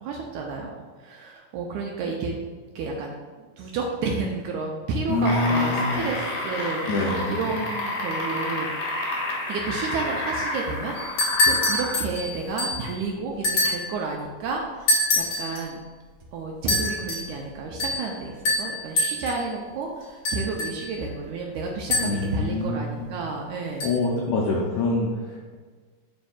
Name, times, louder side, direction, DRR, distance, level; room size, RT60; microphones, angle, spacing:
voice 1, 0.0-2.3 2.8-3.2 3.6-6.2 6.4-6.8 7.3-8.7 9.5-15.8 16.3-23.9, right 4 dB, 80° right, 0 dB, 1.8 m, -31 dB
voice 2, 5.1-6.1 6.9-7.6 22.0-23.1 23.8-25.6, left 2 dB, 90° left, -2 dB, 1.5 m, -26 dB
sound 1, 5.1-12.0 12.9-13.0, left 2 dB, 70° left, 3.0 m, -29 dB
sound 2, 11.0-12.9 13.4-13.9 14.9-15.6 16.7-17.3 17.8-18.1 18.5-19.4 20.3-21.0 21.9-22.4 23.8-23.9, left 2 dB, 50° left, 1.2 m, -25 dB
11.0 x 4.4 x 2.4 m, 1.5 s
omnidirectional pair, 4.0 m